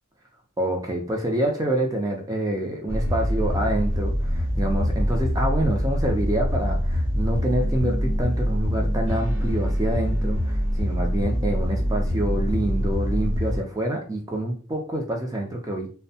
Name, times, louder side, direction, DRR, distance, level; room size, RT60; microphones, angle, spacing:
voice 1, 0.6-15.9, right 1 dB, 15° right, 1 dB, 0.4 m, -27 dB
sound 1, 2.9-13.6, equal, 65° right, 0.8 m, -24 dB
2.6 x 2.1 x 2.7 m, 0.39 s
head